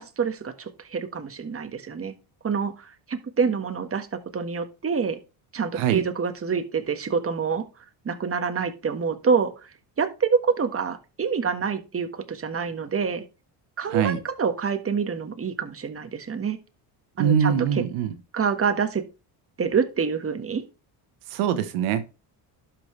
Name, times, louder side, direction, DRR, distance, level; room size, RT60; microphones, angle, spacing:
voice 1, 0.0-2.1 2.4-5.2 5.5-7.6 8.0-13.3 13.8-16.6 17.2-17.8 18.3-19.0 19.6-20.6, right 6 dB, 25° right, 1.5 m, -27 dB
voice 2, 5.7-6.0 13.9-14.2 17.2-18.1 21.3-22.1, right 8 dB, 80° right, 1.3 m, -23 dB
11.5 x 5.9 x 3.3 m
supercardioid pair, 80°, 50 cm